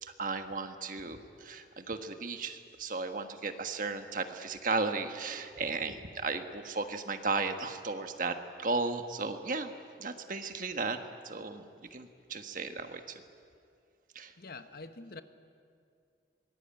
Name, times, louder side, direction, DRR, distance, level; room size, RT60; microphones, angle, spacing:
voice 1, 0.0-9.7 10.0-11.0 11.2-11.6 11.9-13.2 14.1-14.3, right 3 dB, 50° right, 7 dB, 1.5 m, -35 dB
voice 2, 14.4-15.2, left 3 dB, 55° left, 10 dB, 1.1 m, -45 dB
25.0 x 20.0 x 9.0 m, 2.4 s
head